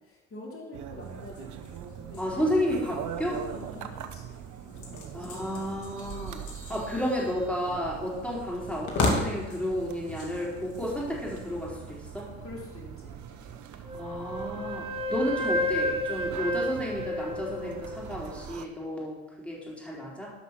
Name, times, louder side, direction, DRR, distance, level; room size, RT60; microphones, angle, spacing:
voice 1, 0.0-1.8 2.1-2.5 3.5-6.1 12.4-13.6, left 2 dB, 35° left, -2 dB, 3.7 m, -46 dB
sound 1, 0.7-18.7, right 9 dB, 50° right, 0.9 m, -42 dB
sound 2, 1.0-12.0, left 2 dB, 55° left, 2.4 m, -37 dB
voice 2, 2.2-3.4 5.1-12.3 13.9-20.3, left 1 dB, 5° left, -4 dB, 4.2 m, -32 dB
Wind instrument woodwind instrument, 13.9-18.1, equal, 15° right, 1.6 m, -31 dB
11.5 x 5.9 x 6.0 m, 1.2 s
hypercardioid pair, 65°, 37 cm